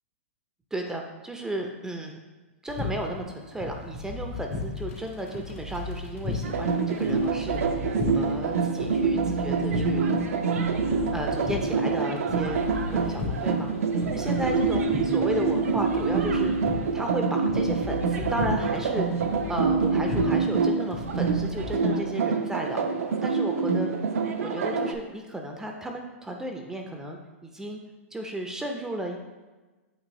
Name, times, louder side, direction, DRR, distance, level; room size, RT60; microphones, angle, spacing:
voice 1, 0.7-2.2 2.6-7.6 8.1-10.1 11.1-12.6 12.9-13.7 14.1-16.5 16.9-19.1 19.5-22.8 23.2-24.0 24.4-27.8 28.1-29.2, right 1 dB, 5° right, 2 dB, 0.5 m, -34 dB
sound 1, 2.7-21.7, left 3 dB, 85° left, 2.0 m, -36 dB
sound 2, 6.4-24.9, right 4 dB, 80° right, 0.7 m, -26 dB
8.2 x 3.0 x 4.1 m, 1.2 s
hypercardioid pair, 130°, 7 cm